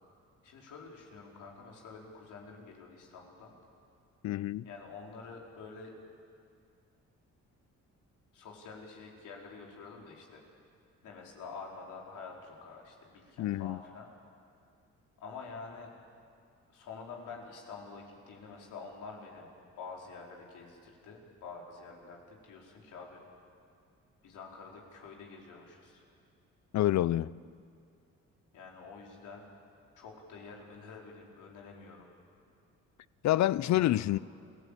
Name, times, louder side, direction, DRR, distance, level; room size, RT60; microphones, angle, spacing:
voice 1, 0.4-3.5 4.6-5.9 8.3-10.4 11.0-14.1 15.2-15.9 16.7-19.5 19.8-23.2 24.2-26.0 28.5-29.4 30.0-32.1 33.6-34.2, left 4 dB, 80° left, 4.6 m, -48 dB
voice 2, 4.2-4.6 13.4-13.8 26.7-27.3 33.2-34.2, left 14 dB, 65° left, 0.6 m, -27 dB
28.0 x 16.5 x 8.4 m
cardioid pair, 90°, 30 cm